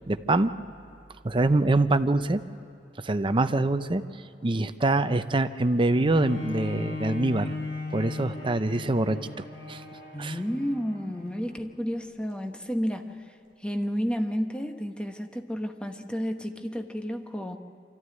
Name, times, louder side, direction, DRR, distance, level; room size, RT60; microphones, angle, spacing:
voice 1, 0.1-0.5 1.2-2.4 3.0-4.0 4.4-7.5 7.9-9.2 9.7-9.8 10.2-10.3, right 2 dB, 30° right, 10 dB, 0.6 m, -24 dB
Bowed string instrument, 5.9-11.5 12.2-12.3, left 3 dB, 65° left, 4.5 m, -37 dB
voice 2, 10.1-13.2 13.6-17.6, equal, 5° left, 5 dB, 1.1 m, -31 dB
24.5 x 14.5 x 9.6 m, 2.6 s
head